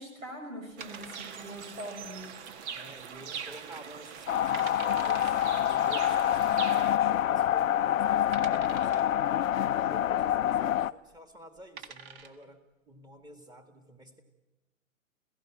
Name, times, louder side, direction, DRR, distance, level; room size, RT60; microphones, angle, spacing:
voice 1, 0.0-2.3, right 1 dB, 80° right, 4 dB, 6.0 m, -42 dB
sound 1, 0.8-1.8 2.0-2.1 2.7-3.2 3.5-3.6 4.2-4.3 4.5-5.5 6.6-6.7 7.4-7.5 8.3-9.2 11.0-11.2 11.6-12.4, right 6 dB, 40° right, 1.7 m, -46 dB
sound 2, 0.8-7.0, right 7 dB, 55° right, 1.6 m, -42 dB
voice 2, 2.7-9.2 9.8-12.6 12.9-14.2, right 1 dB, 10° right, 7 dB, 1.9 m, -50 dB
sound 3, 4.3-10.9, left 11 dB, 80° left, 0.6 m, -26 dB
28.0 x 17.0 x 6.3 m, 1.1 s
hypercardioid pair, 120°, 40 cm